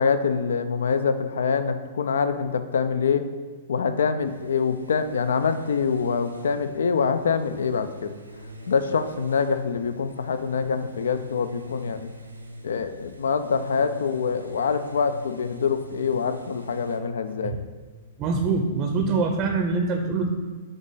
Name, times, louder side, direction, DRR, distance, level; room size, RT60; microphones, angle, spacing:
voice 1, 0.0-3.3 3.7-8.1 8.7-12.1 12.6-17.6, left 5 dB, 65° left, 11 dB, 0.4 m, -25 dB
sound 1, 4.2-17.0, equal, 90° right, 0.6 m, -43 dB
voice 2, 18.2-20.3, right 4 dB, 30° right, 4 dB, 0.6 m, -24 dB
7.1 x 4.0 x 3.8 m, 1.5 s
figure-of-eight pair, 105°, 0 cm